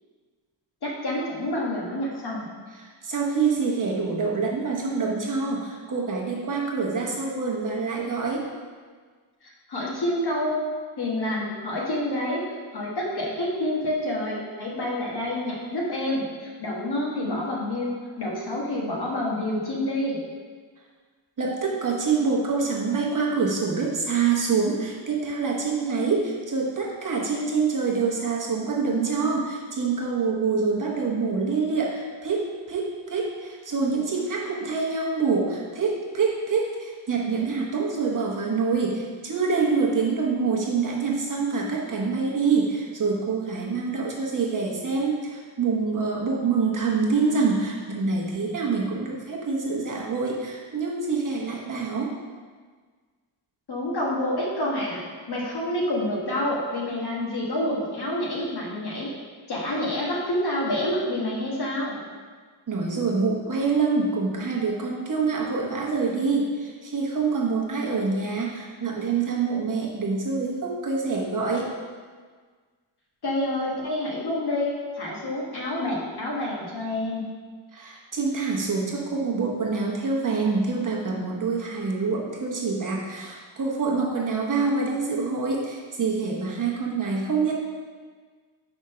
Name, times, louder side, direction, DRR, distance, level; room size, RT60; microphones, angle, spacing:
voice 1, 0.8-2.5 9.4-10.6 11.0-12.4 12.7-20.2 53.7-55.0 55.3-59.1 59.5-62.0 73.2-77.2, left 1 dB, 55° left, -4 dB, 1.4 m, -28 dB
voice 2, 2.7-8.5 21.4-52.1 62.7-71.7 77.7-87.6, right 4 dB, 40° right, -2 dB, 1.0 m, -26 dB
4.9 x 3.6 x 5.5 m, 1.5 s
wide cardioid pair, 120°, 47 cm